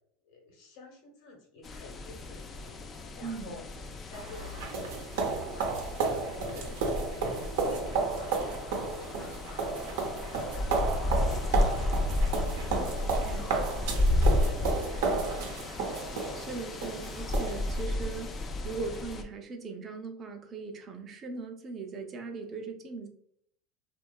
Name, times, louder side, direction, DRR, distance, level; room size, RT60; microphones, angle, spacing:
voice 1, 0.2-2.7 3.2-3.6 4.1-7.2 7.6-9.8 10.3-12.6 12.9-15.6 17.2-17.5, left 3 dB, 65° left, 0 dB, 1.0 m, -50 dB
sound 1, 1.6-19.2, left 1 dB, 30° left, 0.3 m, -32 dB
voice 2, 3.2-3.6 13.2-13.4 13.8-13.9 16.4-23.1, right 4 dB, 35° right, 5 dB, 0.5 m, -39 dB
sound 2, 4.1-17.8, right 4 dB, 80° right, 0.6 m, -33 dB
2.7 x 2.3 x 2.2 m, 0.68 s
supercardioid pair, 120°, 0 cm